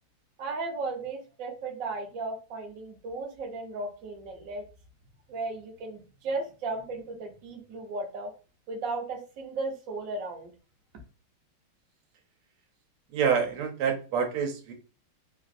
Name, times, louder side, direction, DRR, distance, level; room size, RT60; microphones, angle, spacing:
voice 1, 0.4-4.6 5.3-8.3 8.7-10.5, right 3 dB, 65° right, 2 dB, 0.9 m, -35 dB
voice 2, 13.1-14.7, right 7 dB, 85° right, 4 dB, 1.6 m, -27 dB
3.7 x 2.4 x 2.5 m, 0.34 s
omnidirectional pair, 2.4 m